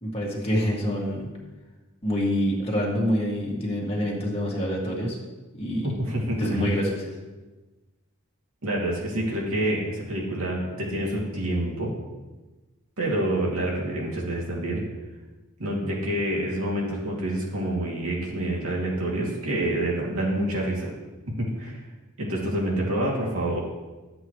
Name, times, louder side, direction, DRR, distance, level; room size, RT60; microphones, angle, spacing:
voice 1, 0.0-1.3 2.0-5.2 5.5-5.9 6.4-7.1, equal, 25° left, -4 dB, 2.0 m, -26 dB
voice 2, 5.8-6.6 8.6-11.9 13.0-14.8 15.6-20.9 21.4-21.8 22.2-23.6, right 1 dB, 70° right, -3 dB, 2.6 m, -27 dB
12.5 x 7.9 x 3.2 m, 1.2 s
head